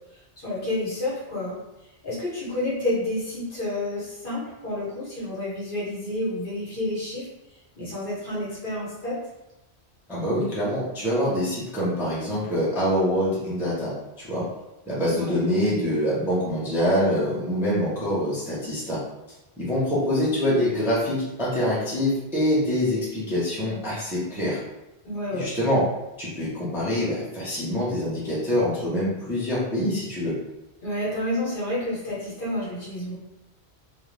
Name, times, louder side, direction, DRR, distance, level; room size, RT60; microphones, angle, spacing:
voice 1, 0.4-1.6 2.0-7.3 7.8-9.2 15.1-15.3 25.0-25.5 30.8-33.1, left 1 dB, 55° left, -7 dB, 1.1 m, -29 dB
voice 2, 10.1-14.5 14.9-19.0 19.6-24.6 25.3-25.8 26.2-30.4, equal, 5° right, -8 dB, 0.6 m, -25 dB
2.5 x 2.1 x 3.1 m, 0.96 s
omnidirectional pair, 1.1 m